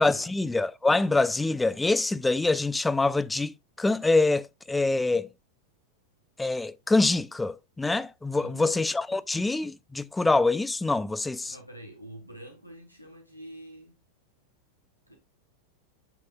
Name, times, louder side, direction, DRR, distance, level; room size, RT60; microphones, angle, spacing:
voice 1, 0.0-5.3 6.4-11.5, left 3 dB, 10° left, 0.4 m, -25 dB
voice 2, 8.4-8.7 11.4-14.0 15.1-15.2, right 1 dB, 90° left, 1.4 m, -46 dB
8.9 x 6.0 x 2.3 m
figure-of-eight pair, 90°, 0 cm